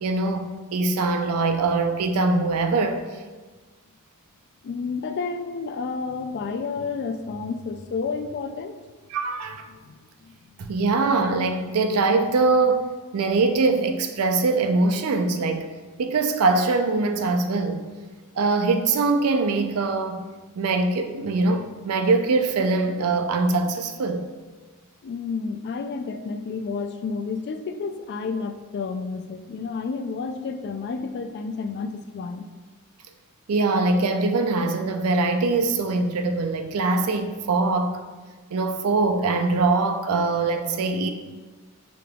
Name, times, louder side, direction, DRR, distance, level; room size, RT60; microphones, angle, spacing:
voice 1, 0.0-3.0 9.1-9.6 10.6-15.6 16.0-17.8 18.4-20.2 20.6-24.2 33.5-38.0 38.5-41.1, right 3 dB, 80° right, 0.4 m, -22 dB
voice 2, 4.6-8.8 9.7-10.5 25.0-32.4, left 4 dB, 50° left, 0.3 m, -31 dB
5.2 x 2.9 x 3.5 m
head